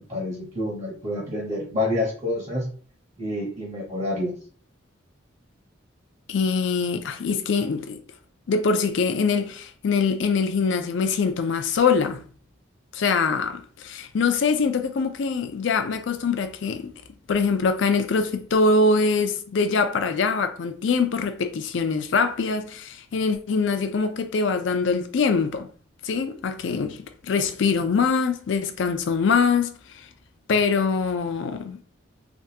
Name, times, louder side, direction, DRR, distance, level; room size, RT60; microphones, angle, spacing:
voice 1, 0.1-2.6 3.2-4.3, left 1 dB, 35° right, 0.8 m, -28 dB
voice 2, 6.3-8.0 8.5-12.2 12.9-16.9 17.3-25.7 26.0-30.1 30.5-31.8, left 4 dB, 65° left, 0.4 m, -23 dB
3.5 x 2.3 x 2.7 m
head